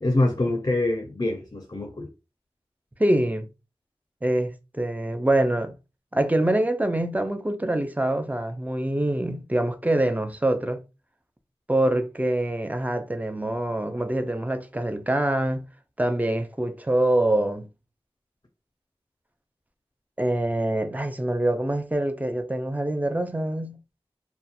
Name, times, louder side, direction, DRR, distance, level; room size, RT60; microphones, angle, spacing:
voice 1, 0.0-2.1, left 2 dB, 40° left, 0.5 m, -25 dB
voice 2, 3.0-3.5 4.2-5.7 6.1-10.8 11.7-15.6 16.0-17.7 20.2-23.8, right 1 dB, 15° right, 0.4 m, -25 dB
2.4 x 2.2 x 2.7 m
wide cardioid pair, 55°, 10 cm